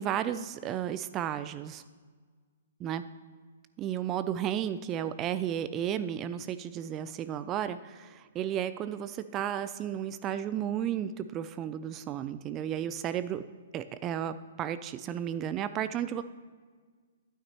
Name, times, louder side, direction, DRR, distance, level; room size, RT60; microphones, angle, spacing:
voice 1, 0.0-1.8 2.8-3.0 3.8-13.4 13.7-16.2, right 10 dB, 25° right, 13 dB, 0.3 m, -33 dB
11.5 x 9.1 x 2.9 m, 1.5 s
figure-of-eight pair, 120°, 0 cm